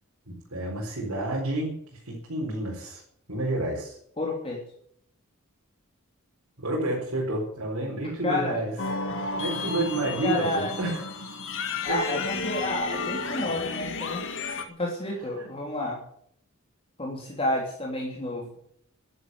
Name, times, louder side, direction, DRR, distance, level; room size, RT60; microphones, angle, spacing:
voice 1, 0.3-3.0 3.3-4.0 6.6-8.7 9.2-11.1 11.9-12.0 15.3-15.5, right 1 dB, 80° right, -3 dB, 4.6 m, -30 dB
voice 2, 4.2-4.6 7.8-8.6 10.2-10.7 11.8-14.2 14.8-16.0 17.0-18.5, left 2 dB, 25° left, -2 dB, 3.1 m, -30 dB
sound 1, 8.8-14.6, left 3 dB, 60° left, 1.9 m, -32 dB
11.5 x 11.0 x 9.4 m, 0.68 s
head